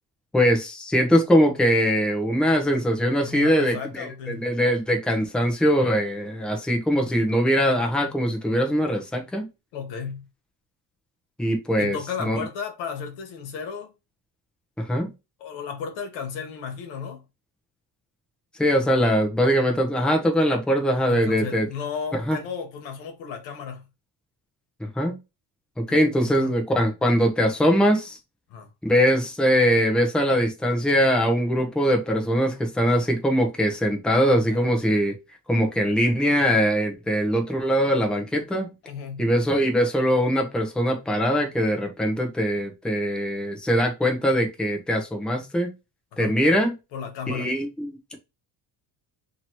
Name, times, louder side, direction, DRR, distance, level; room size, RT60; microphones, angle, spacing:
voice 1, 0.3-9.5 11.4-12.4 14.8-15.1 18.6-21.7 22.1-22.4 24.8-25.2 25.9-28.2 28.8-35.2 35.5-38.7 39.2-45.7 46.2-46.7 47.3-48.2, equal, ahead, 0.7 m, -22 dB
voice 2, 3.3-4.5 9.7-10.2 11.8-13.9 15.4-17.2 21.1-23.8 26.2-26.5 28.5-28.7 34.2-34.7 38.9-39.3 46.1-46.3 46.9-47.5, left 6 dB, 85° left, 1.2 m, -34 dB
2.9 x 2.9 x 4.4 m
cardioid pair, 140°, 42 cm